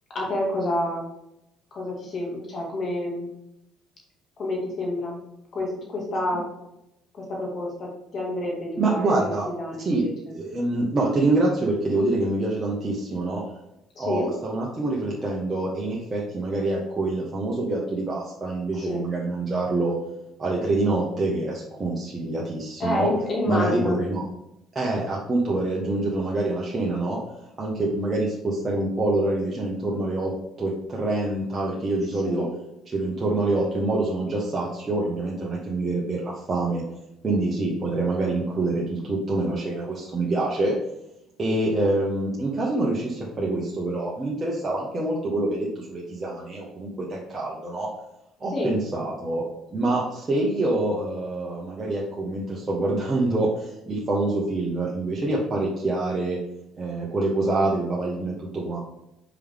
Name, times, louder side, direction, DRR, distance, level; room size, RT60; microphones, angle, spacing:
voice 1, 0.1-1.1 1.7-3.3 4.4-5.2 5.5-6.5 7.1-10.1 14.0-14.3 18.7-19.0 22.8-24.0 32.2-32.5 48.5-48.8, left 1 dB, 45° left, -2 dB, 2.2 m, -28 dB
voice 2, 8.8-9.5 9.8-10.0 10.3-13.4 14.0-20.0 20.4-23.1 23.5-24.2 24.7-27.2 27.6-30.3 30.6-32.5 32.9-36.8 37.2-40.7 41.4-47.9 48.4-49.5 49.7-56.4 56.8-58.8, right 2 dB, 30° right, -4 dB, 1.4 m, -26 dB
5.4 x 5.1 x 3.6 m, 0.84 s
hypercardioid pair, 55°, 0 cm